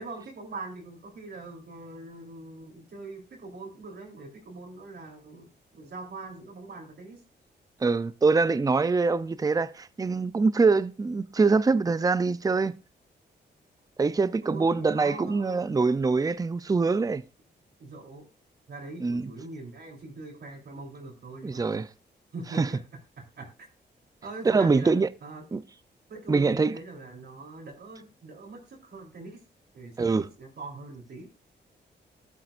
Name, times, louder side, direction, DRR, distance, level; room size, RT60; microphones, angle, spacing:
voice 1, 0.0-7.2 14.2-15.8 17.8-18.3 18.7-21.8 22.3-22.8 23.2-23.5 24.2-24.9 25.2-25.4 26.1-29.4 29.7-31.4, right 3 dB, 65° right, 3.6 m, -42 dB
voice 2, 7.8-12.7 14.0-17.2 19.0-19.3 21.4-21.9 22.6-22.7 24.5-25.1 25.5-25.6 26.3-26.8 30.0-30.3, right 4 dB, 20° right, 0.5 m, -24 dB
12.0 x 12.0 x 2.5 m
cardioid pair, 100°, 18 cm